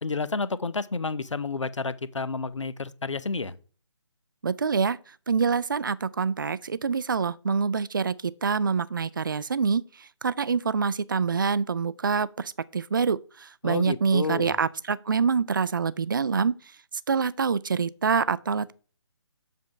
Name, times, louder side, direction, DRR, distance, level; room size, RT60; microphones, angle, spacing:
voice 1, 0.0-3.6 13.6-14.5, left 4 dB, 75° left, 0.6 m, -30 dB
voice 2, 4.4-16.6 17.1-18.7, right 5 dB, 45° right, 0.4 m, -26 dB
7.5 x 3.6 x 5.3 m
figure-of-eight pair, 145°, 16 cm